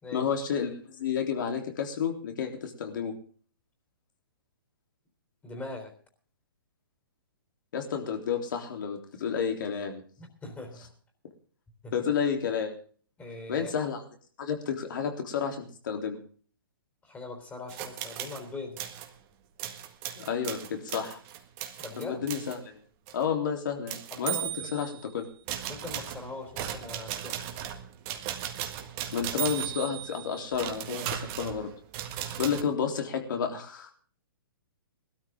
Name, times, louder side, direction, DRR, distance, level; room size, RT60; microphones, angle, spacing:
voice 1, 0.1-3.2 7.7-10.0 11.9-12.7 13.5-14.0 14.4-16.2 20.2-21.2 22.0-22.8 23.1-24.4 24.7-25.3 29.1-31.7 32.4-33.9, left 7 dB, 60° left, 4 dB, 3.6 m, -31 dB
voice 2, 5.4-5.9 10.2-10.9 11.8-12.1 13.2-13.7 17.0-18.8 21.8-22.2 24.1-24.7 25.7-27.5, left 3 dB, 15° left, 4 dB, 3.7 m, -41 dB
sound 1, 17.7-18.4 18.8-19.1 19.6-22.6 23.1-23.2 23.9-25.0 25.5-32.6, right 12 dB, 35° right, 1.8 m, -36 dB
19.5 x 13.0 x 3.7 m, 0.43 s
hypercardioid pair, 135°, 12 cm